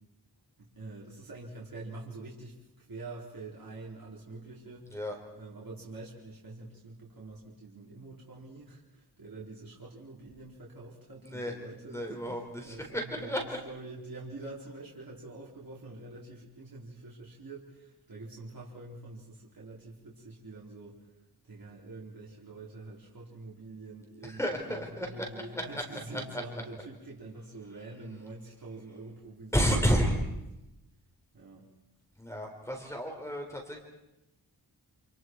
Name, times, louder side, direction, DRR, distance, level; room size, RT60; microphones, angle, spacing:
voice 1, 0.6-5.0 5.3-21.1 21.4-30.2 31.3-31.7, right 2 dB, 60° right, -5 dB, 4.5 m, -46 dB
voice 2, 11.2-11.5 11.9-13.4 24.2-25.1 26.1-26.2 29.5-30.1 32.2-33.8, equal, 5° left, 1 dB, 4.1 m, -31 dB
28.5 x 28.0 x 4.7 m, 0.93 s
wide cardioid pair, 110°, 38 cm